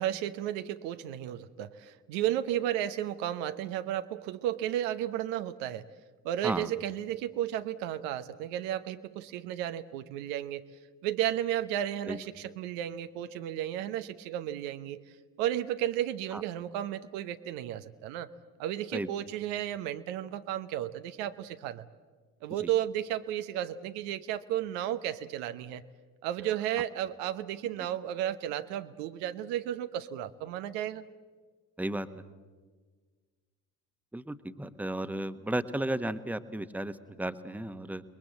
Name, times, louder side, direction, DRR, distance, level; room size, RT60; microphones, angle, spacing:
voice 1, 0.0-5.9 6.2-10.6 11.0-15.0 15.4-18.3 18.6-21.8 22.4-25.8 26.2-31.0, right 12 dB, 70° right, 10 dB, 1.1 m, -33 dB
voice 2, 34.1-38.0, right 1 dB, 5° right, 11 dB, 1.3 m, -34 dB
29.0 x 21.5 x 7.7 m, 1.4 s
figure-of-eight pair, 50°, 45 cm